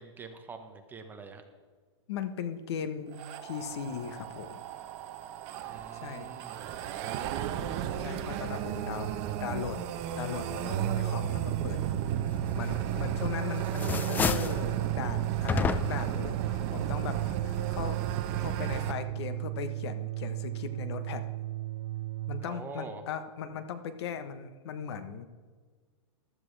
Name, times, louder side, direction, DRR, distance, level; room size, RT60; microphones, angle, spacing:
voice 1, 0.0-1.4 5.6-6.7 22.4-23.0, right 4 dB, 10° right, 5 dB, 1.1 m, -45 dB
voice 2, 2.1-4.6 5.9-6.3 8.0-9.8 10.2-12.0 12.5-18.0 18.4-21.2 22.3-25.3, left 7 dB, 60° left, 10 dB, 1.1 m, -38 dB
sound 1, 3.1-18.9, right 9 dB, 40° right, 0.9 m, -35 dB
sound 2, 10.6-22.5, right 15 dB, 75° right, 0.4 m, -35 dB
sound 3, 12.9-13.4 13.7-14.6 15.5-16.1, left 5 dB, 10° left, 0.4 m, -30 dB
14.5 x 12.5 x 3.4 m, 1.5 s
hypercardioid pair, 145°, 15 cm